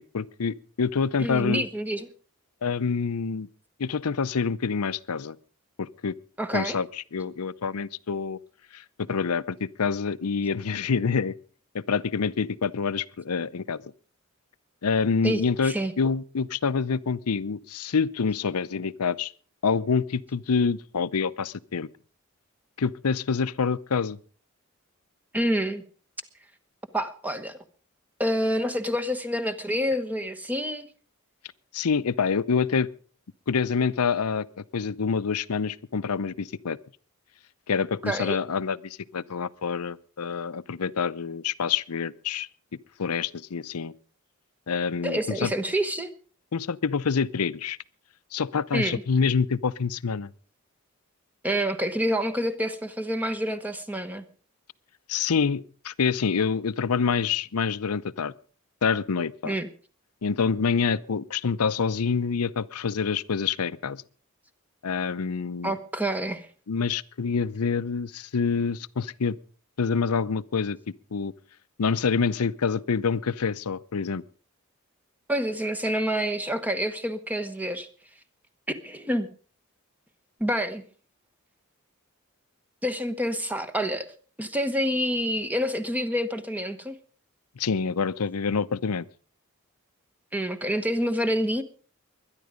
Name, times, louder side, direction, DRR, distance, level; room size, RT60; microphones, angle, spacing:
voice 1, 0.0-1.6 2.6-3.5 3.8-5.4 5.8-6.1 6.5-6.9 7.1-8.4 8.7-11.4 11.7-13.8 14.8-19.3 19.6-21.9 22.8-24.2 31.7-32.9 33.5-36.8 37.7-42.5 43.0-43.9 44.7-45.5 46.5-47.8 48.3-50.3 55.1-58.3 58.8-59.5 60.2-64.0 64.8-65.7 66.7-69.4 69.8-70.8 71.1-71.3 71.8-74.2 87.6-89.0, left 5 dB, 90° left, 0.6 m, -26 dB
voice 2, 1.2-2.1 6.4-6.8 15.2-15.9 25.3-25.8 26.9-27.6 28.2-30.9 38.0-38.4 45.0-46.1 48.7-49.0 51.4-54.2 59.4-59.7 65.6-66.5 75.3-77.9 78.7-79.3 80.4-80.8 82.8-84.1 84.4-87.0 90.3-91.6, equal, 5° right, 1.1 m, -27 dB
21.5 x 11.0 x 5.1 m
head